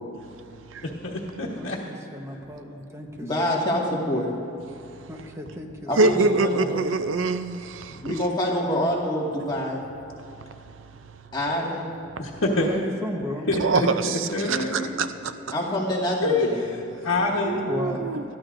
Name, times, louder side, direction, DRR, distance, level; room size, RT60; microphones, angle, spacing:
voice 1, 1.0-1.8 12.2-12.7 13.5-13.9 14.3-15.0 16.2-16.5 17.0-17.6, left 2 dB, 80° left, -5 dB, 1.3 m, -25 dB
voice 2, 1.5-3.5 5.1-6.7 12.6-13.5 17.7-18.1, left 1 dB, 15° right, 2 dB, 1.1 m, -34 dB
voice 3, 3.2-4.3 5.9-6.9 8.0-9.9 11.3-12.0 15.5-16.7, equal, 20° left, -4 dB, 2.0 m, -26 dB
voice 4, 6.0-8.1 13.6-15.3 17.4-18.2, right 3 dB, 75° right, 10 dB, 0.5 m, -24 dB
20.5 x 13.5 x 2.6 m, 2.9 s
head